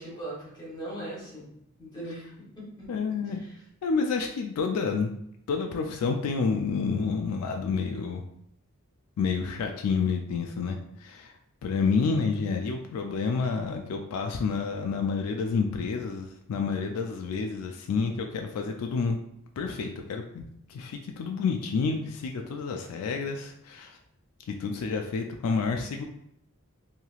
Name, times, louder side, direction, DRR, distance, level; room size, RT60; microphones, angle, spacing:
voice 1, 0.0-1.5 1.8-2.3 2.6-3.6, right 1 dB, 20° left, -6 dB, 0.9 m, -40 dB
voice 2, 2.9-3.4 3.8-5.1 5.5-8.2 9.2-11.3 11.6-19.2 19.6-24.0 24.6-26.0, left 5 dB, 85° left, 3 dB, 0.3 m, -29 dB
3.0 x 2.8 x 2.3 m, 0.74 s
head